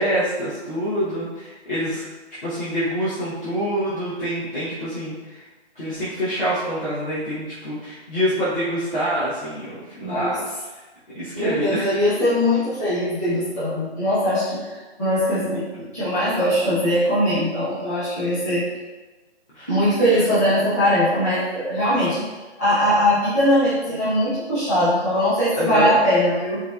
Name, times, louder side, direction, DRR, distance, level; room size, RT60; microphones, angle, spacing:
voice 1, 0.0-2.0 2.4-5.5 5.7-10.8 11.1-11.9 19.5-19.7 22.2-22.3 25.5-26.0, equal, 50° left, -11 dB, 0.9 m, -26 dB
voice 2, 10.0-10.4 11.3-14.7 15.0-15.7 15.9-18.6 19.7-22.2 22.6-26.6, equal, 15° left, -14 dB, 0.8 m, -21 dB
3.4 x 2.9 x 2.3 m, 1.2 s
hypercardioid pair, 175°, 34 cm